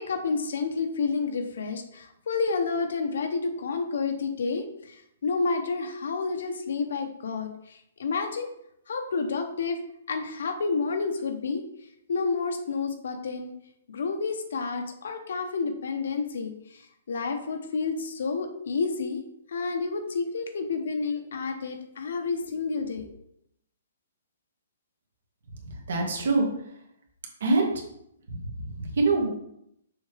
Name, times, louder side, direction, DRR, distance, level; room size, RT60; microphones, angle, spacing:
voice 1, 0.0-8.5 8.9-9.8 10.1-11.6 12.1-13.5 13.9-19.2 19.5-23.1, left 4 dB, 60° left, 5 dB, 1.0 m, -30 dB
voice 2, 25.6-26.5 27.4-27.7 28.3-29.3, right 3 dB, 60° right, 1 dB, 1.9 m, -25 dB
6.8 x 5.5 x 3.4 m, 0.75 s
hypercardioid pair, 180°, 0 cm